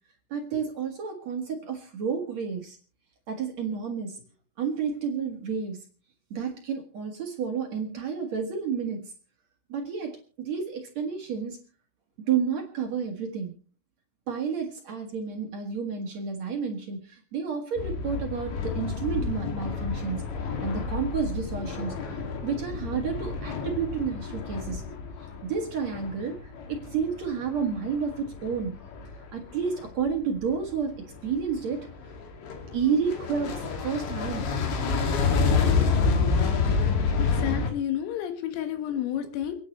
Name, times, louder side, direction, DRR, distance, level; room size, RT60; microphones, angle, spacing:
voice 1, 0.3-2.8 3.3-4.2 4.6-5.9 6.3-9.1 9.7-11.6 12.2-13.5 14.3-20.2 20.6-24.8 25.4-28.8 29.3-31.9 32.7-34.7, right 6 dB, 60° right, 3 dB, 1.8 m, -31 dB
sound 1, 17.8-30.0 30.5-30.7 31.1-37.7, left 5 dB, 65° left, 4.4 m, -29 dB
voice 2, 37.2-39.6, left 10 dB, 85° left, 7 dB, 4.2 m, -31 dB
29.0 x 9.9 x 3.2 m, 0.37 s
omnidirectional pair, 5.9 m